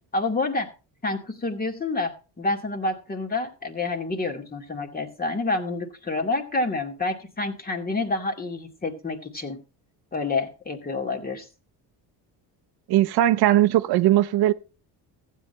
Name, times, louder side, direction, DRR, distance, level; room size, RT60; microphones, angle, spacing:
voice 1, 0.1-0.7 1.0-9.6 10.1-11.5, left 3 dB, 25° left, 2.2 m, -28 dB
voice 2, 12.9-14.5, right 13 dB, 75° right, 0.8 m, -19 dB
15.0 x 8.9 x 3.2 m
cardioid pair, 115°, 39 cm